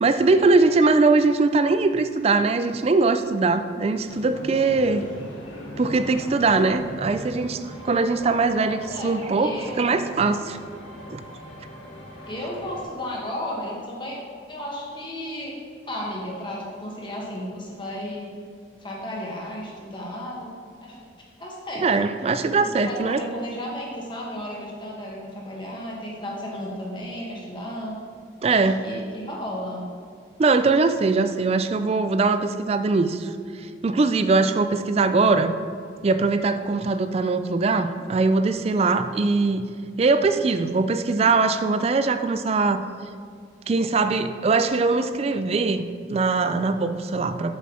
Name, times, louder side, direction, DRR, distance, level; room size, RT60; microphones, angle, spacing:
voice 1, 0.0-5.0 5.8-10.6 11.1-11.3 21.8-23.2 28.4-28.8 30.4-35.5 36.0-39.6 40.0-42.8 43.7-47.6, right 3 dB, 35° right, 10 dB, 0.3 m, -21 dB
sound 1, 4.1-12.8, equal, 90° left, 1.7 m, -40 dB
voice 2, 8.6-9.9 12.2-14.2 14.5-15.5 15.9-18.3 18.8-20.5 20.8-21.0 21.4-22.0 22.6-28.0 28.6-29.8, left 1 dB, 25° left, -3 dB, 1.4 m, -34 dB
7.1 x 6.2 x 4.4 m, 2.2 s
head